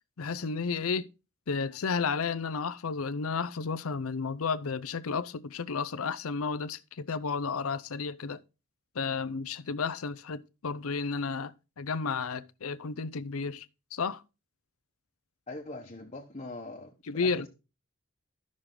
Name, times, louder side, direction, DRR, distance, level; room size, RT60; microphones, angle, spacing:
voice 1, 0.2-1.1 1.5-8.4 9.0-13.7 13.9-14.2 17.1-17.4, left 5 dB, 75° left, 0.6 m, -32 dB
voice 2, 15.5-17.5, left 2 dB, 30° left, 1.1 m, -42 dB
13.0 x 6.3 x 3.8 m
head